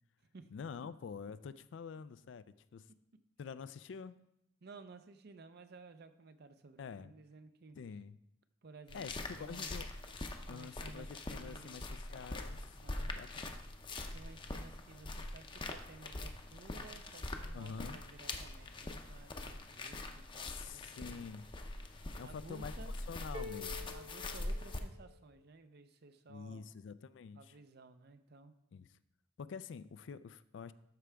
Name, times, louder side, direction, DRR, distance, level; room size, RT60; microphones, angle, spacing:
voice 1, 0.5-2.4 2.7-2.9 3.4-4.2 6.8-7.1 7.7-8.2 8.9-9.9 10.5-12.8 13.1-13.4 17.5-18.0 20.4-21.5 22.1-22.7 23.1-23.9 26.3-27.5 28.7-28.9 29.4-30.7, left 6 dB, 75° left, 15 dB, 0.4 m, -47 dB
voice 2, 4.6-7.8 8.6-9.1 9.4-9.7 10.5-11.9 12.8-13.2 14.1-21.2 22.2-22.9 23.9-26.7 27.3-28.5, right 3 dB, 60° right, 10 dB, 0.6 m, -55 dB
sound 1, 8.9-24.8, left 2 dB, 25° left, 0.6 m, -44 dB
sound 2, 23.3-25.3, left 4 dB, 25° right, 1.0 m, -48 dB
12.5 x 4.8 x 3.4 m, 0.81 s
head